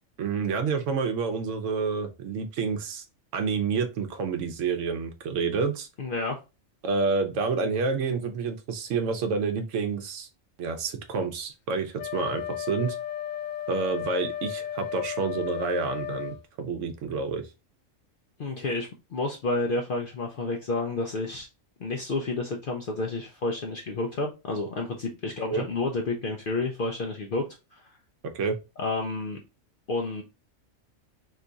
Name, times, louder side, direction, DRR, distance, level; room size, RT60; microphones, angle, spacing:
voice 1, 0.2-3.0 3.3-5.9 6.8-10.3 10.6-13.0 13.7-17.4 25.5-25.7 28.3-28.6, right 4 dB, 70° right, 7 dB, 1.0 m, -28 dB
voice 2, 6.0-6.4 18.4-21.5 21.8-27.4 27.7-27.9 28.8-29.4 29.9-30.2, left 2 dB, 55° left, 2 dB, 0.6 m, -30 dB
Wind instrument woodwind instrument, 12.0-16.4, left 11 dB, 85° left, 1.0 m, -34 dB
3.0 x 2.3 x 3.8 m, 0.27 s
omnidirectional pair, 1.3 m